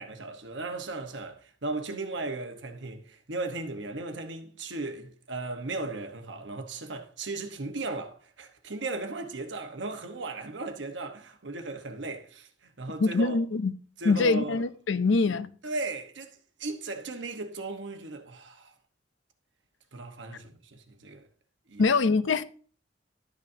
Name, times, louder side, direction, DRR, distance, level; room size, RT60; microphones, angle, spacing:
voice 1, 0.0-13.4 14.0-14.6 14.9-15.0 15.6-18.7 19.9-21.2 21.7-21.8, right 3 dB, 75° right, 1.1 m, -36 dB
voice 2, 13.0-13.7 14.0-15.5 21.8-22.4, left 3 dB, 80° left, 0.5 m, -24 dB
11.5 x 8.2 x 2.7 m
head